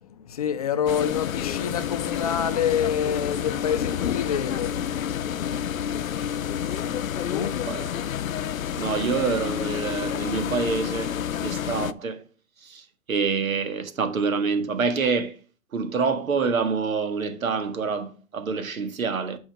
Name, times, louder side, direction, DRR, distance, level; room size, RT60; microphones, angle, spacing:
voice 1, 0.0-4.8 7.3-7.6, left 8 dB, 30° left, 0.6 m, -27 dB
sound 1, 0.9-11.9, left 9 dB, 80° left, 0.7 m, -29 dB
voice 2, 8.7-11.1 11.4-12.2 12.6-15.3 15.7-19.4, right 5 dB, 80° right, 2.0 m, -26 dB
9.1 x 5.7 x 4.8 m
hypercardioid pair, 160°, 41 cm